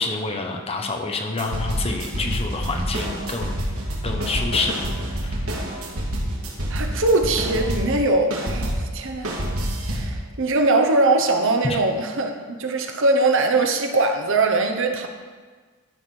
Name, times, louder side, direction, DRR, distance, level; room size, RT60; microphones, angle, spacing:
voice 1, 0.0-3.6 4.0-5.4 11.6-11.8, left 3 dB, 30° left, 3 dB, 0.9 m, -27 dB
sound 1, 1.4-8.0 8.3-10.2, equal, 85° right, 2.3 m, -27 dB
voice 2, 6.7-9.3 9.9-15.1, right 2 dB, 65° right, 5 dB, 1.0 m, -21 dB
12.5 x 5.1 x 6.1 m, 1.5 s
head